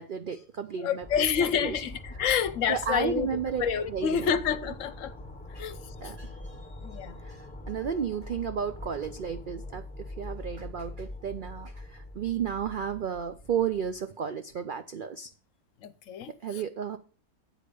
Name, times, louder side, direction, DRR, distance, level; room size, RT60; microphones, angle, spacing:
voice 1, 0.0-1.8 2.7-4.4 5.5-5.7 6.0-6.6 7.2-15.3 16.4-17.0, right 7 dB, 70° right, 0.4 m, -33 dB
voice 2, 0.8-3.3 3.6-5.1 5.6-6.1 6.8-7.2 15.8-16.6, left 7 dB, 65° left, 1.0 m, -29 dB
sound 1, 1.0-14.0, left 1 dB, 10° left, 0.7 m, -43 dB
8.4 x 5.0 x 6.8 m
omnidirectional pair, 1.5 m